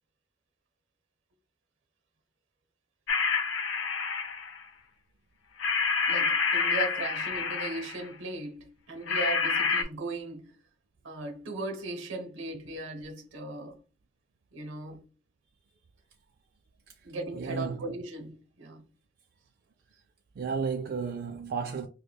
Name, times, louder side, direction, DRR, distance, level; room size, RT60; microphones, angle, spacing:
sound 1, 3.1-4.6 5.6-8.0 9.1-9.8, left 5 dB, 85° left, 0.6 m, -28 dB
voice 1, 6.1-10.5 11.0-13.8 14.5-15.0 17.0-18.8, right 2 dB, 75° right, 0.7 m, -37 dB
voice 2, 17.3-18.0 20.3-21.9, right 5 dB, 55° right, 0.3 m, -33 dB
5.1 x 2.1 x 2.2 m
head